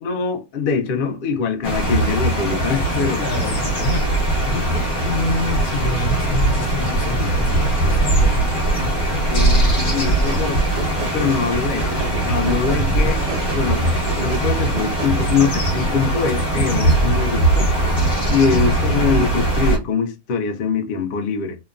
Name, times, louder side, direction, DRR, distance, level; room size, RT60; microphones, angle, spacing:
voice 1, 0.0-3.2 9.3-10.6 11.1-13.2 13.5-17.7 18.3-21.6, left 5 dB, 65° left, 0.5 m, -23 dB
sound 1, 1.6-19.8, right 2 dB, 25° left, 1.0 m, -20 dB
voice 2, 3.2-4.1 4.4-8.4 8.7-8.9 12.8-13.1 16.6-17.2 18.5-18.7, left 3 dB, 80° left, 1.2 m, -27 dB
sound 2, 9.7-15.8, right 4 dB, 60° right, 0.7 m, -32 dB
2.9 x 2.1 x 2.3 m
omnidirectional pair, 1.6 m